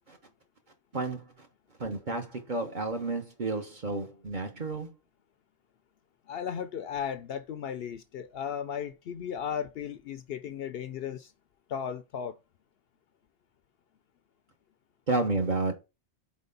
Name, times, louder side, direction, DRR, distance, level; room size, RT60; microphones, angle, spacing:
voice 1, 0.9-1.5 1.8-4.9 15.1-15.7, right 3 dB, 45° right, 1.0 m, -31 dB
voice 2, 6.3-11.3 11.7-12.3, left 8 dB, 65° left, 0.7 m, -35 dB
4.3 x 4.1 x 5.3 m
omnidirectional pair, 1.3 m